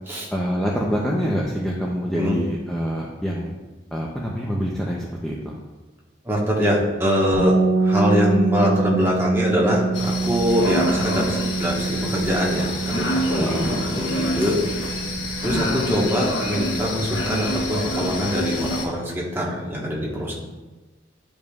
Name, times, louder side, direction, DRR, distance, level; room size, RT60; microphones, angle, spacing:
voice 1, 0.3-3.5 3.9-5.6 13.4-13.7, equal, ahead, -4 dB, 0.6 m, -26 dB
voice 2, 6.2-14.6 15.4-20.4, equal, 15° right, -4 dB, 1.3 m, -23 dB
sound 1, 7.3-17.1, right 3 dB, 30° right, 2.0 m, -26 dB
sound 2, 9.9-18.9, left 1 dB, 85° left, 1.1 m, -27 dB
11.0 x 5.1 x 2.4 m, 1.2 s
head